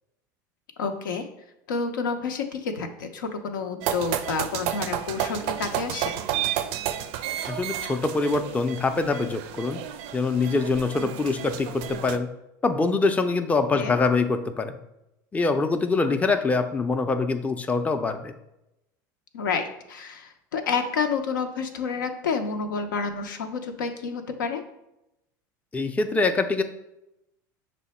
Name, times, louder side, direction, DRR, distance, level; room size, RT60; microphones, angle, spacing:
voice 1, 0.8-1.2 1.7-6.1 13.7-13.9 19.3-24.6, left 5 dB, 90° left, 5 dB, 0.6 m, -29 dB
sound 1, 3.8-12.2, right 11 dB, 60° right, 0.4 m, -31 dB
voice 2, 7.5-9.8 10.1-12.3 12.6-14.8 15.3-18.3 25.7-26.6, left 3 dB, 15° left, 8 dB, 0.4 m, -24 dB
6.1 x 2.1 x 4.1 m, 0.87 s
hypercardioid pair, 90°, 10 cm